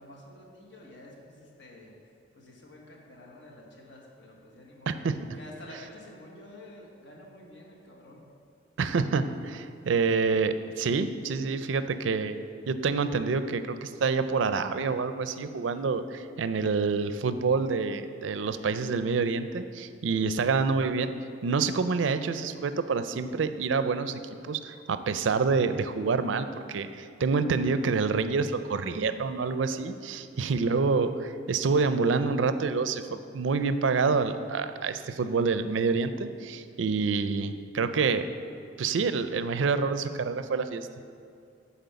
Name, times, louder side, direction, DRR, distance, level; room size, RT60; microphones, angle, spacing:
voice 1, 0.0-5.0 5.4-8.3, left 1 dB, 65° left, -1 dB, 1.5 m, -49 dB
voice 2, 4.9-5.2 8.8-12.4 12.7-21.1 21.4-38.3 38.8-40.9, right 4 dB, 80° right, 11 dB, 0.4 m, -27 dB
9.2 x 4.3 x 6.8 m, 2.4 s
head